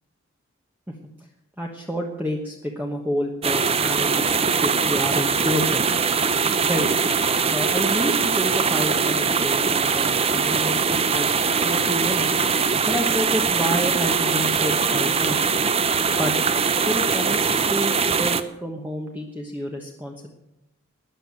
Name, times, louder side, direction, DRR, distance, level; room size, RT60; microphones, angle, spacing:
voice 1, 1.6-5.9 6.7-6.9 7.5-12.4 12.9-15.4 16.2-16.3 16.8-20.3, equal, 10° right, 0 dB, 1.1 m, -29 dB
sound 1, 3.4-18.4, right 5 dB, 25° right, 0.6 m, -22 dB
13.0 x 10.0 x 7.6 m, 0.86 s
head